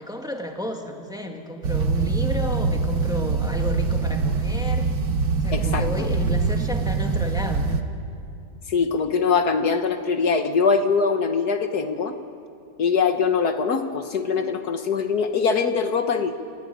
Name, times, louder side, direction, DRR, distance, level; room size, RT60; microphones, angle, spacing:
voice 1, 0.0-4.9 5.4-7.8, left 1 dB, ahead, 3 dB, 1.9 m, -32 dB
sound 1, 1.6-7.8, right 4 dB, 80° right, 1.8 m, -24 dB
voice 2, 5.5-6.1 8.7-12.1 12.8-16.4, left 5 dB, 65° left, 7 dB, 1.6 m, -22 dB
29.0 x 16.0 x 9.4 m, 2.7 s
omnidirectional pair, 1.8 m